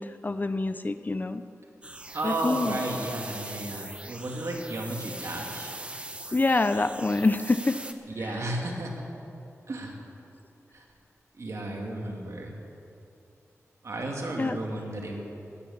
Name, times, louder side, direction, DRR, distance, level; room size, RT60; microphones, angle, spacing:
voice 1, 0.0-1.4 2.2-2.7 6.3-7.8 14.4-14.6, left 3 dB, 35° left, 11 dB, 0.6 m, -26 dB
sound 1, 1.8-7.9, right 1 dB, 20° right, 1.0 m, -41 dB
voice 2, 2.1-5.7 8.1-9.0 9.7-10.0 10.7-10.9 11.3-12.5 13.8-15.2, right 1 dB, 65° right, 0 dB, 2.6 m, -33 dB
17.0 x 10.5 x 7.3 m, 2.7 s
wide cardioid pair, 75°, 5 cm